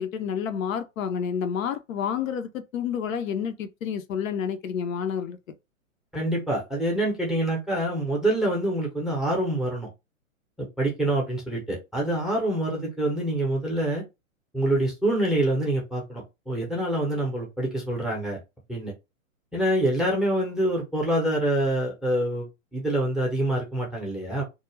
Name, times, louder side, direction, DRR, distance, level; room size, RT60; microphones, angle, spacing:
voice 1, 0.0-5.4, left 7 dB, 70° left, 0.6 m, -29 dB
voice 2, 6.1-9.9 10.6-14.0 14.5-18.4 18.7-18.9 19.5-24.4, right 1 dB, ahead, 0.6 m, -26 dB
2.3 x 2.1 x 3.0 m
hypercardioid pair, 115°, 42 cm